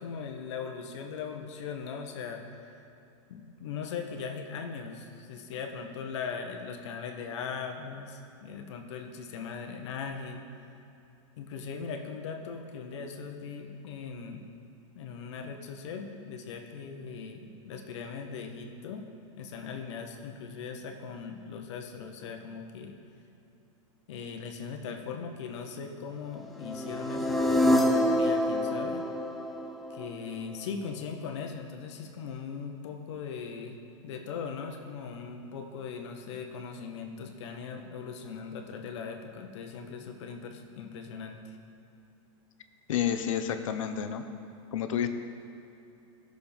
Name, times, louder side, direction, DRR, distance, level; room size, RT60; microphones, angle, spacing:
voice 1, 0.0-2.7 3.3-10.4 11.4-14.4 14.9-19.1 19.4-23.0 24.1-29.0 29.9-41.6, left 5 dB, 60° left, 4 dB, 1.1 m, -39 dB
sound 1, 26.6-30.7, left 1 dB, ahead, 0.4 m, -27 dB
voice 2, 42.9-44.2 44.7-45.1, left 9 dB, 85° left, 8 dB, 0.8 m, -29 dB
15.5 x 6.5 x 3.5 m, 2.8 s
supercardioid pair, 160°, 16 cm